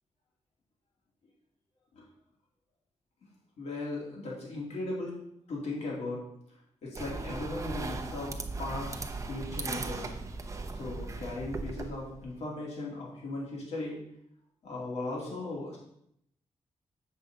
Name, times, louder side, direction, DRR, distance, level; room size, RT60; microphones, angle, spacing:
voice 1, 3.6-5.2 5.5-6.2 6.8-8.9 9.3-10.2 10.7-14.0 14.6-15.8, left 2 dB, 65° left, -3 dB, 2.8 m, -37 dB
sound 1, 7.0-12.3, right 3 dB, 25° right, 0.7 m, -38 dB
7.6 x 6.6 x 5.4 m, 0.75 s
wide cardioid pair, 170°, 12 cm